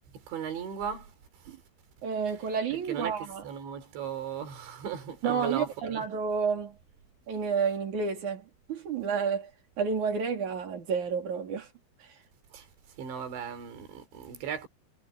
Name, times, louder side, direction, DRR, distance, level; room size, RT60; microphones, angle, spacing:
voice 1, 0.3-1.1 2.9-6.1 12.5-12.6 13.0-14.7, right 8 dB, 80° right, 5.8 m, -37 dB
voice 2, 2.0-3.4 5.2-6.8 7.3-9.5 9.8-11.7 12.0-12.1, right 6 dB, 45° right, 4.4 m, -30 dB
omnidirectional pair, 5.1 m